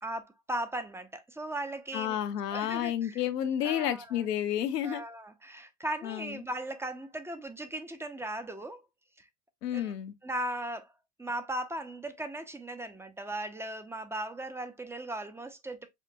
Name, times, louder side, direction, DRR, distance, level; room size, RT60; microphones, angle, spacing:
voice 1, 0.0-2.2 2.5-3.2 3.6-4.2 4.8-8.8 9.2-9.3 9.7-9.9 10.2-10.9 11.2-15.9, right 1 dB, 5° right, 0.4 m, -37 dB
voice 2, 1.9-5.0 6.0-6.4 9.6-10.1, left 10 dB, 85° left, 0.8 m, -31 dB
5.9 x 2.1 x 2.6 m
hypercardioid pair, 90°, 46 cm